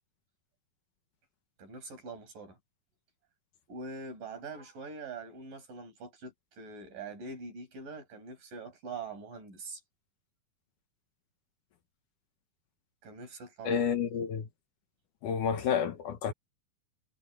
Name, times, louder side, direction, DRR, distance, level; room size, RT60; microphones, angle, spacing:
voice 1, 1.6-2.6 3.7-9.8 13.0-13.8, right 3 dB, 65° right, 8.0 m, -43 dB
voice 2, 13.6-14.5 15.2-16.3, left 7 dB, 65° left, 2.6 m, -30 dB
omnidirectional pair, 4.2 m